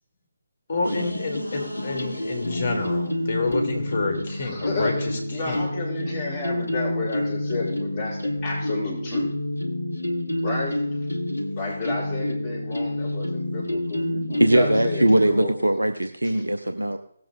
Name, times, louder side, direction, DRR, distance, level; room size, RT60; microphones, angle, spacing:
voice 1, 0.7-4.9 5.4-5.6, left 3 dB, 45° left, 4 dB, 2.9 m, -28 dB
sound 1, 0.8-15.5, left 1 dB, 80° left, 1.7 m, -28 dB
voice 2, 4.3-9.3 10.4-10.8 11.6-15.5, left 3 dB, 15° left, -10 dB, 4.6 m, -31 dB
voice 3, 14.3-17.0, right 1 dB, 80° right, 8 dB, 0.7 m, -21 dB
18.0 x 7.6 x 4.1 m, 0.67 s
figure-of-eight pair, 145°, 0 cm